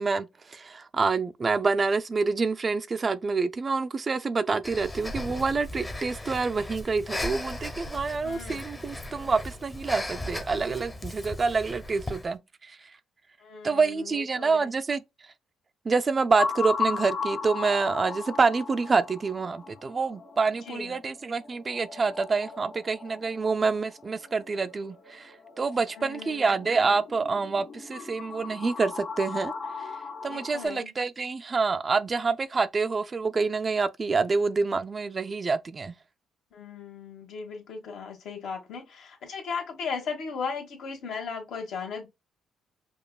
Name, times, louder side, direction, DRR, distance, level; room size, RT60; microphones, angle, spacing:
voice 1, 0.0-12.8 13.6-15.0 15.9-29.5 30.2-35.9, right 4 dB, 35° right, 0.4 m, -27 dB
Breathing, 4.6-12.3, left 1 dB, 20° left, 0.7 m, -37 dB
voice 2, 8.2-8.6 13.4-14.7 20.6-21.0 25.9-26.7 30.2-30.9 36.5-42.1, left 5 dB, 75° left, 1.3 m, -37 dB
sound 1, 16.4-30.7, left 4 dB, 50° left, 1.6 m, -37 dB
5.2 x 2.3 x 2.2 m
cardioid pair, 90°, 0 cm